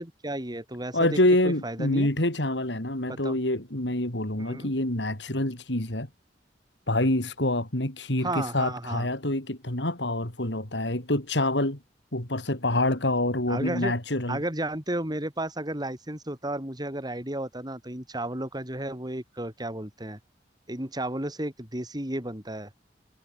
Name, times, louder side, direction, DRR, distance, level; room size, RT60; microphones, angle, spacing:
voice 1, 0.0-1.2 1.4-2.1 3.1-3.4 4.4-4.7 8.2-9.1 13.5-13.9 14.3-20.2 20.7-22.7, right 1 dB, 25° right, 4.2 m, -33 dB
voice 2, 0.9-6.1 6.9-11.8 12.1-14.4, left 1 dB, 75° left, 4.7 m, -26 dB
head